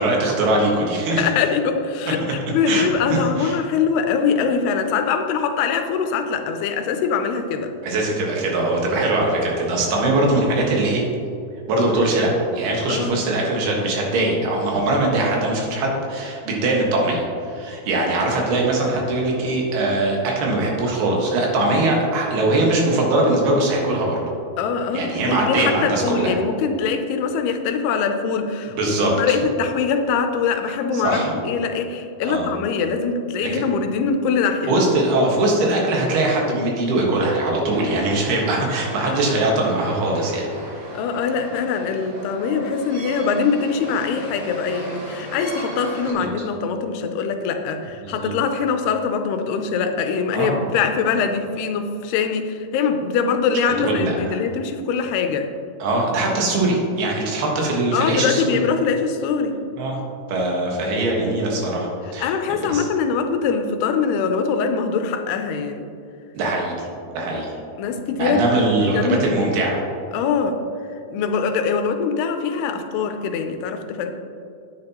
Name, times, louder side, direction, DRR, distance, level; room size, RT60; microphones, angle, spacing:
voice 1, 0.0-1.3 2.7-3.6 7.8-11.0 11.7-24.2 24.9-26.4 28.8-29.3 30.9-31.3 32.2-32.5 34.7-40.4 48.0-48.3 50.3-50.6 53.8-54.4 55.8-58.6 59.8-60.0 60.3-62.3 62.7-62.9 66.3-67.5 68.1-69.9, right 2 dB, 75° right, -1 dB, 3.5 m, -21 dB
voice 2, 1.1-7.7 12.9-13.2 24.6-34.7 40.9-55.5 57.9-59.6 62.2-65.9 67.8-69.5 70.1-70.6 71.1-74.1, left 5 dB, 85° left, 6 dB, 2.7 m, -23 dB
sound 1, 37.7-46.1, right 1 dB, 50° right, 2.6 m, -36 dB
9.6 x 9.5 x 3.0 m, 2.5 s
omnidirectional pair, 4.5 m